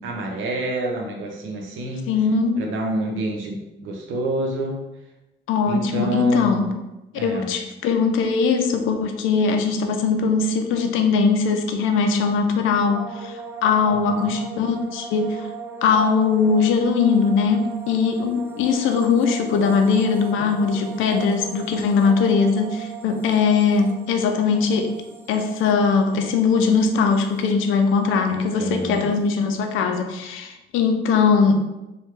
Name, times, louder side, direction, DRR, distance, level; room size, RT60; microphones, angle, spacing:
voice 1, 0.0-2.1 2.6-4.8 5.7-6.7 7.1-7.5 13.9-14.4 20.4-20.5 28.3-29.1, right 2 dB, 80° right, 1 dB, 0.7 m, -28 dB
voice 2, 2.1-2.7 5.5-6.7 7.1-15.5 15.8-24.9 25.3-31.6, left 5 dB, 85° left, 5 dB, 0.5 m, -20 dB
sound 1, 12.9-28.1 28.4-29.0, right 4 dB, 10° right, 0.4 m, -38 dB
3.2 x 2.2 x 3.1 m, 0.98 s
cardioid pair, 90°, 20 cm